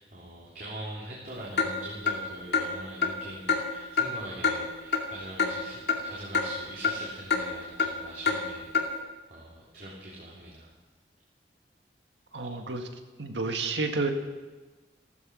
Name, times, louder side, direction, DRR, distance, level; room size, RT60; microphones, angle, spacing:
voice 1, 0.0-8.9 9.3-10.7, right 1 dB, 50° right, -6 dB, 3.5 m, -43 dB
Clock, 1.6-1.7 2.1-2.2 2.5-2.7 3.0-3.1 3.5-3.6 4.0-4.1 4.4-4.6 4.9-5.0 5.4-5.5 5.9-6.0 6.3-6.5 6.8-7.0 7.3-7.4 7.8-7.9 8.3-8.4 8.7-8.9, left 5 dB, 70° left, 2.3 m, -25 dB
voice 2, 12.3-12.9 13.2-14.1, right 3 dB, 90° right, 5 dB, 1.9 m, -30 dB
15.5 x 14.5 x 6.4 m, 1.3 s
head